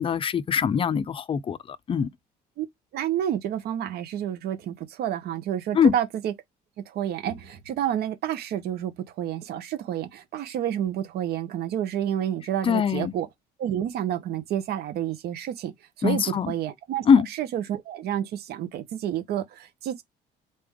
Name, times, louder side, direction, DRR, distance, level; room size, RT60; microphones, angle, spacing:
voice 1, 0.0-2.1 5.7-5.9 12.6-13.1 16.0-16.5 17.1-17.3, left 7 dB, 30° left, 0.4 m, -22 dB
voice 2, 2.9-6.3 6.9-13.3 13.6-20.0, right 10 dB, 70° right, 0.8 m, -29 dB
4.1 x 3.4 x 3.5 m
cardioid pair, 110°, 17 cm